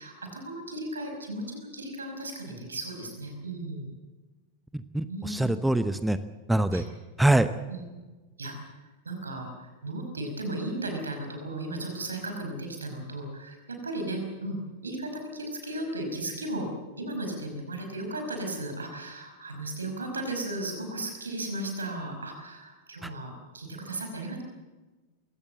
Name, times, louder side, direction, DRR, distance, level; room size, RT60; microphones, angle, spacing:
voice 1, 0.0-3.9 5.1-5.7 6.7-6.8 7.7-7.9 8.4-8.7 9.1-16.7 17.0-24.4, right 1 dB, 75° right, 4 dB, 5.3 m, -35 dB
voice 2, 4.7-6.2 6.5-6.8 7.2-7.5 23.0-23.1, right 1 dB, 5° right, 12 dB, 0.9 m, -24 dB
22.0 x 17.5 x 7.7 m, 1.2 s
figure-of-eight pair, 90°, 0 cm